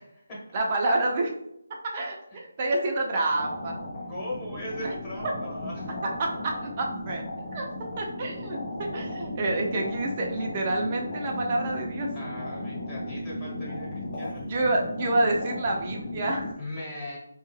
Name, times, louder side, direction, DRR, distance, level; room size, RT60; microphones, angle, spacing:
voice 1, 0.0-0.4 2.3-2.4 4.1-6.0 12.1-14.4 16.6-17.2, left 1 dB, 15° left, -7 dB, 1.3 m, -38 dB
voice 2, 0.5-1.3 1.8-3.8 4.8-4.9 6.2-7.2 7.5-7.7 8.0-12.1 14.4-16.5, right 2 dB, 25° right, 0 dB, 0.6 m, -28 dB
sound 1, 3.3-16.5, left 1 dB, 30° left, 0.7 m, -36 dB
4.6 x 2.3 x 3.1 m, 0.78 s
figure-of-eight pair, 170°, 0 cm